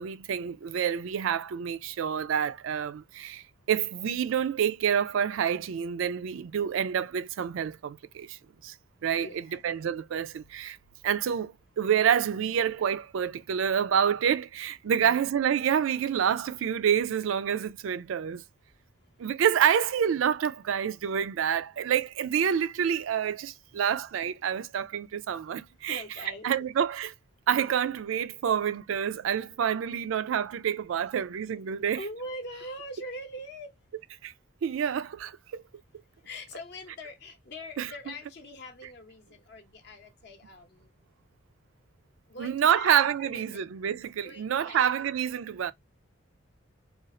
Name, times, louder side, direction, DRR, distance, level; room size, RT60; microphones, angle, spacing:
voice 1, 0.0-8.7 9.0-10.8 11.0-18.4 19.2-26.0 26.4-27.1 27.5-32.0 34.2-34.3 34.6-35.6 37.8-37.9 42.4-45.7, right 8 dB, 70° right, 0.3 m, -28 dB
voice 2, 9.1-9.7 14.8-15.2 19.0-19.1 25.9-26.7 31.1-31.3 31.9-33.7 36.2-40.9 42.3-43.7 44.2-45.1, left 1 dB, 50° left, 0.7 m, -43 dB
2.5 x 2.4 x 4.0 m
head